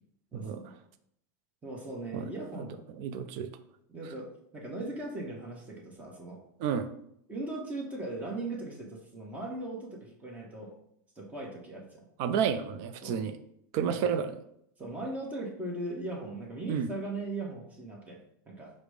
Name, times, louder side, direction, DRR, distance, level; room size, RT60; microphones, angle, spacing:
voice 1, 0.3-0.7 1.6-2.7 3.9-6.4 7.3-10.7 11.2-12.0 13.0-13.3 13.8-14.2 14.8-18.7, right 2 dB, 15° right, -1 dB, 1.0 m, -39 dB
voice 2, 3.0-3.5 6.6-6.9 12.2-13.3 13.7-14.3 16.7-16.9, right 7 dB, 50° right, 10 dB, 0.5 m, -30 dB
5.0 x 2.1 x 4.8 m, 0.72 s
supercardioid pair, 135°, 10 cm